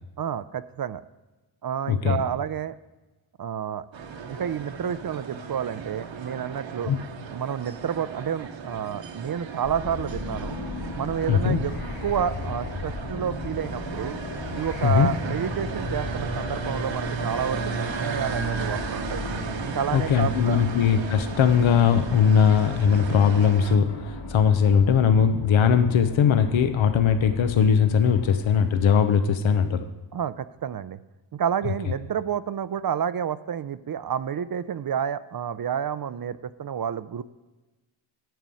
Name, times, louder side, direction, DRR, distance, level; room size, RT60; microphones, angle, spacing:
voice 1, 0.2-1.0 1.6-2.7 3.4-3.8 4.3-6.9 7.3-10.6 10.9-11.7 12.0-14.2 14.5-19.2 19.6-20.6 30.1-31.0 31.3-37.2, right 8 dB, 45° right, 15 dB, 0.6 m, -29 dB
voice 2, 1.9-2.2 6.9-7.0 11.3-11.6 14.8-15.1 19.9-29.8, left 7 dB, 70° left, 8 dB, 0.9 m, -20 dB
sound 1, 3.9-23.8, right 5 dB, 65° right, 1.2 m, -35 dB
sound 2, 9.6-28.8, left 2 dB, 50° left, 3.6 m, -36 dB
9.2 x 6.9 x 7.6 m, 1.1 s
cardioid pair, 70°, 49 cm